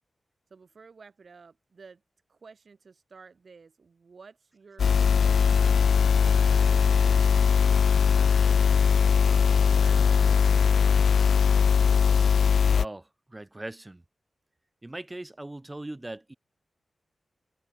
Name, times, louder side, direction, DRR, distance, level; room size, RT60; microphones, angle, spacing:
voice 1, 0.5-2.0 2.3-6.9 7.5-8.6 9.2-10.5, right 5 dB, 60° right, 6.3 m, -52 dB
sound 1, 4.8-12.9, left 6 dB, 85° left, 0.3 m, -20 dB
voice 2, 12.6-14.0 14.8-16.3, right 1 dB, 20° right, 2.5 m, -40 dB
wide cardioid pair, 95°, 0 cm